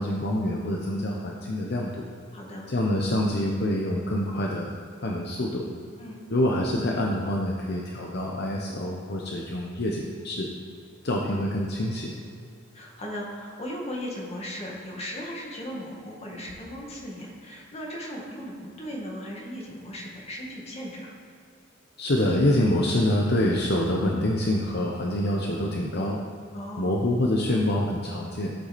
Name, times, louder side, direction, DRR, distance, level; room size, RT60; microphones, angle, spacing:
voice 1, 0.0-2.1 2.7-4.7 5.0-5.7 6.3-10.5 11.0-12.1 22.0-26.2 26.8-28.5, left 1 dB, 50° left, -1 dB, 0.9 m, -26 dB
voice 2, 2.3-2.7 6.0-6.2 12.7-21.1 26.5-27.0, equal, 30° left, -2 dB, 1.9 m, -37 dB
13.5 x 8.3 x 4.2 m, 2.5 s
head